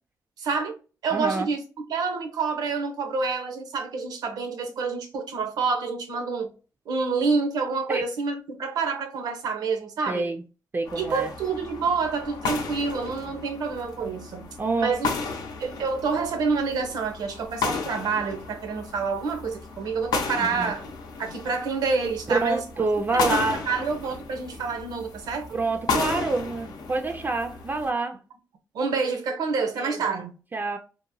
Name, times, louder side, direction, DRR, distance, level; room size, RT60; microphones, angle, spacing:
voice 1, 0.4-0.7 1.0-1.6 1.9-6.5 6.9-10.3 11.0-15.1 15.6-20.8 21.2-22.6 23.1-25.5 28.7-30.4, right 4 dB, 80° right, 0.7 m, -28 dB
voice 2, 1.1-1.5 7.9-8.0 10.1-10.4 10.7-11.3 14.6-15.0 20.4-20.7 22.3-23.7 25.5-28.2 29.7-30.2 30.5-30.8, right 3 dB, 30° right, 0.3 m, -27 dB
sound 1, 10.9-27.9, left 4 dB, 80° left, 0.6 m, -34 dB
2.8 x 2.1 x 2.6 m
cardioid pair, 80°, 7 cm